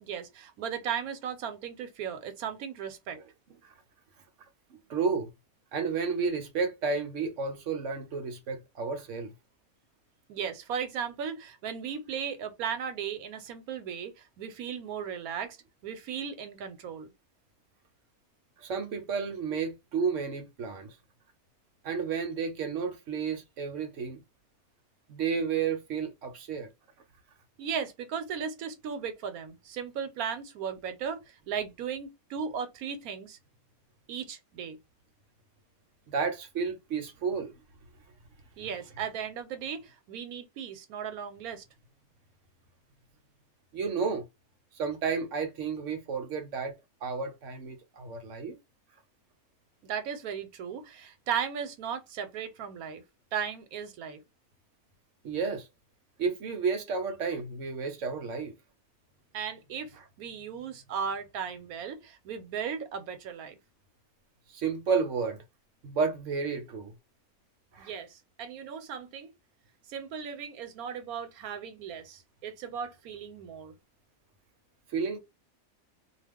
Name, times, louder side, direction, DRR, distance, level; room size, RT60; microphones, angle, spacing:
voice 1, 0.0-3.2 10.3-15.6 15.8-17.1 27.6-33.4 34.1-34.8 38.6-41.6 49.8-53.0 53.3-54.2 59.3-63.6 67.8-69.3 69.9-73.7, right 7 dB, 85° right, 1.2 m, -36 dB
voice 2, 4.9-5.3 5.7-9.3 18.6-20.9 21.8-24.2 25.1-26.7 36.1-37.5 43.7-44.3 44.7-46.7 47.0-48.6 55.2-55.7 56.2-58.5 64.5-65.4 65.8-66.9 67.7-67.9 74.9-75.2, right 5 dB, 65° right, 1.0 m, -31 dB
2.4 x 2.3 x 3.4 m
omnidirectional pair, 1.5 m